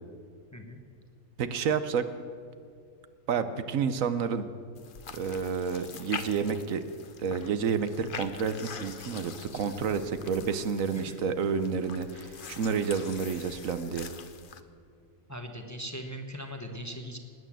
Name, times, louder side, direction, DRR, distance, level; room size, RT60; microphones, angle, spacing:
voice 1, 1.4-2.1 3.3-4.5 5.1-6.8 7.2-14.1, right 6 dB, 70° right, 11 dB, 1.2 m, -30 dB
sound 1, 4.8-14.6, left 6 dB, 45° left, 0.8 m, -44 dB
voice 2, 15.3-17.2, equal, 15° left, 4 dB, 1.0 m, -39 dB
19.0 x 9.2 x 7.4 m, 2.3 s
omnidirectional pair, 1.5 m